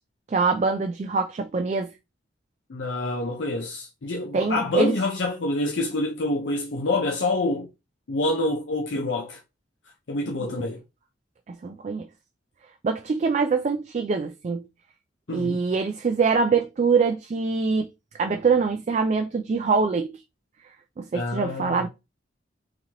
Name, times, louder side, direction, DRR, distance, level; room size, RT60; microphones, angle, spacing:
voice 1, 0.3-1.9 4.3-4.9 10.3-10.5 11.5-12.0 12.8-14.6 15.3-17.9 18.2-20.1 21.0-21.9, right 4 dB, 40° right, 0.3 m, -24 dB
voice 2, 2.7-7.7 8.1-9.4 10.1-10.8 15.3-15.6 21.1-21.8, left 2 dB, 80° left, 0.6 m, -27 dB
3.9 x 2.9 x 2.9 m
head